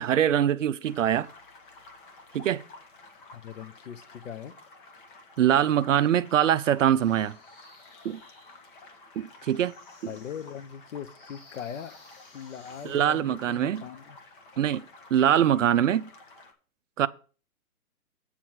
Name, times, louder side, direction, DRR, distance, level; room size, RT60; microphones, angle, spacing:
voice 1, 0.0-1.3 2.3-2.7 5.4-7.4 8.0-8.2 9.2-10.1 12.8-13.8 14.6-14.9 15.1-16.1 17.0-17.1, right 10 dB, 55° right, 0.5 m, -23 dB
sound 1, 0.8-16.5, left 3 dB, 35° left, 1.4 m, -52 dB
voice 2, 3.3-4.5 10.1-12.0 12.3-14.2, left 8 dB, 55° left, 0.9 m, -40 dB
sound 2, 6.9-13.2, left 3 dB, 75° left, 5.5 m, -57 dB
8.7 x 4.7 x 7.3 m
hypercardioid pair, 160°, 45 cm